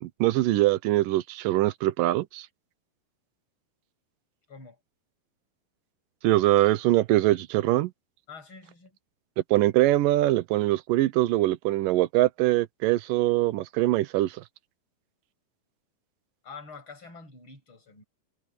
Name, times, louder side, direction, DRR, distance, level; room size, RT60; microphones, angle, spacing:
voice 1, 0.0-2.4 6.2-7.9 9.5-14.3, right 16 dB, 75° right, 2.2 m, -23 dB
voice 2, 8.3-9.0 16.4-18.0, left 4 dB, 35° left, 8.6 m, -46 dB
omnidirectional pair, 4.2 m